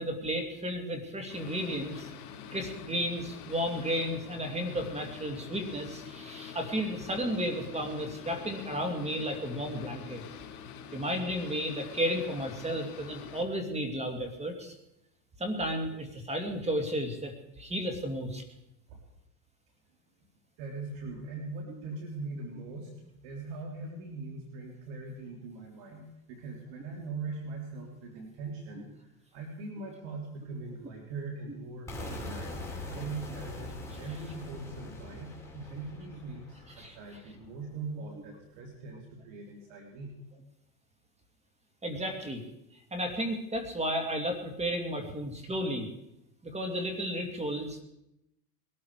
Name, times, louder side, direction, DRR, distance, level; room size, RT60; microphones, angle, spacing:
voice 1, 0.0-2.1 2.5-10.2 10.9-14.7 15.4-18.4 36.8-37.0 41.8-42.4 42.9-45.9 46.4-47.8, equal, 15° right, 5 dB, 2.6 m, -33 dB
Boat Water vehicle, 1.3-13.4, left 8 dB, 70° left, 3.7 m, -46 dB
voice 2, 20.6-40.1, right 3 dB, 60° right, 1 dB, 3.6 m, -41 dB
sound 1, 31.9-37.7, left 2 dB, 5° left, 4.2 m, -43 dB
21.0 x 13.0 x 4.9 m, 0.84 s
supercardioid pair, 120°, 46 cm